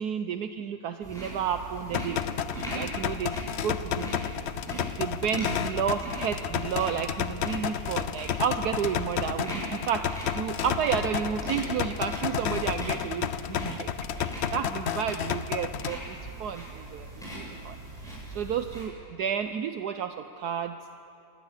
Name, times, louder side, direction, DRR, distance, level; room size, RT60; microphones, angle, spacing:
voice 1, 0.0-2.2 2.7-4.4 5.0-17.8 18.0-20.8, right 8 dB, 70° right, 8 dB, 1.2 m, -32 dB
sound 1, 1.0-18.9, right 1 dB, ahead, 7.4 m, -40 dB
sound 2, 1.9-15.9, left 9 dB, 85° left, 0.5 m, -32 dB
27.5 x 15.0 x 8.2 m, 2.6 s
omnidirectional pair, 1.9 m